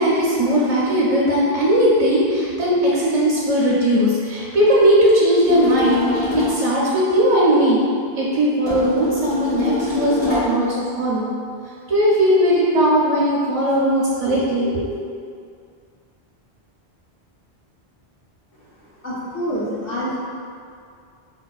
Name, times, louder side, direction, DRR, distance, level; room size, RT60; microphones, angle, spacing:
voice 1, 0.0-7.8 8.1-11.3 11.9-14.9, equal, 55° right, -7 dB, 0.4 m, -18 dB
sound 1, 5.4-6.6 8.7-10.6, left 2 dB, 85° left, 1.9 m, -24 dB
voice 2, 19.0-20.2, equal, 60° left, -8 dB, 1.0 m, -26 dB
4.1 x 2.2 x 2.3 m, 2.3 s
omnidirectional pair, 1.1 m